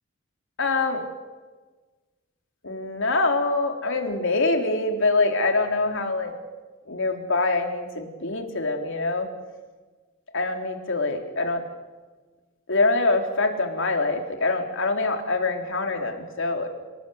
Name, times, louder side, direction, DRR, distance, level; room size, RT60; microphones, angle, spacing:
voice 1, 0.6-1.0 2.6-6.3 6.9-9.3 10.3-11.6 12.7-16.7, left 3 dB, 65° left, 4 dB, 3.8 m, -24 dB
29.5 x 19.5 x 8.4 m, 1.3 s
head